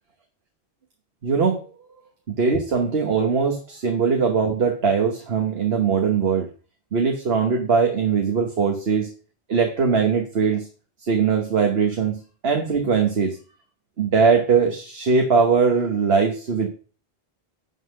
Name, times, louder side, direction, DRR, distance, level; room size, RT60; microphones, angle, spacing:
voice 1, 1.2-1.6 2.3-6.5 6.9-9.1 9.5-10.6 11.1-13.4 14.0-16.7, right 5 dB, 75° right, 3 dB, 1.4 m, -21 dB
11.0 x 4.1 x 6.3 m, 0.39 s
omnidirectional pair, 1.0 m